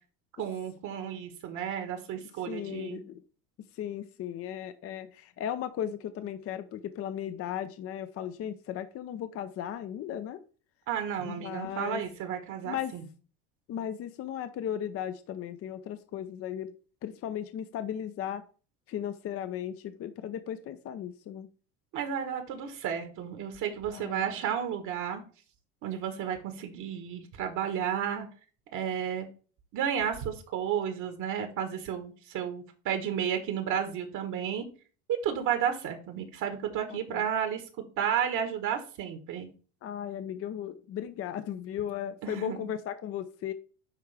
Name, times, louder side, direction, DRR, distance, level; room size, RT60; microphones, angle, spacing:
voice 1, 0.4-3.0 10.9-13.0 21.9-25.2 25.8-28.3 28.7-29.2 29.7-34.6 35.2-37.6 38.0-39.5 42.2-42.7, right 8 dB, 60° right, 6 dB, 1.4 m, -32 dB
voice 2, 2.5-3.2 3.8-10.4 11.2-12.0 12.6-12.9 13.7-16.7 17.0-18.4 18.9-21.5 23.9-24.2 36.9-37.2 39.8-43.5, left 10 dB, 40° left, 11 dB, 0.6 m, -36 dB
9.8 x 3.4 x 3.4 m, 0.39 s
supercardioid pair, 95°, 34 cm